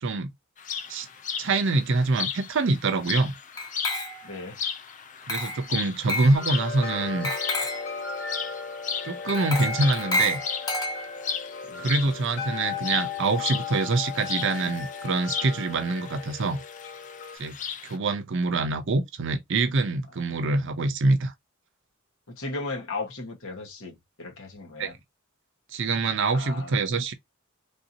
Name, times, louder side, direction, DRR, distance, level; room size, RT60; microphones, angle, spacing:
voice 1, 0.0-0.3 0.9-1.1 1.4-3.3 5.3-7.3 9.0-10.4 11.8-16.6 17.4-17.6 17.8-21.3 24.8-24.9 25.7-27.1, right 3 dB, 60° right, 0.6 m, -25 dB
sound 1, 0.6-18.0, left 7 dB, 40° left, 0.5 m, -36 dB
Glass, 3.6-4.4 5.3-5.7 6.1-6.4 7.2-7.9 9.3-11.3, left 1 dB, 20° left, 0.8 m, -30 dB
voice 2, 4.2-4.6 11.7-11.9 22.3-25.0 26.3-26.9, left 3 dB, 70° left, 1.3 m, -36 dB
sound 2, 6.3-17.4, left 6 dB, 55° left, 1.5 m, -36 dB
3.4 x 2.7 x 2.7 m
head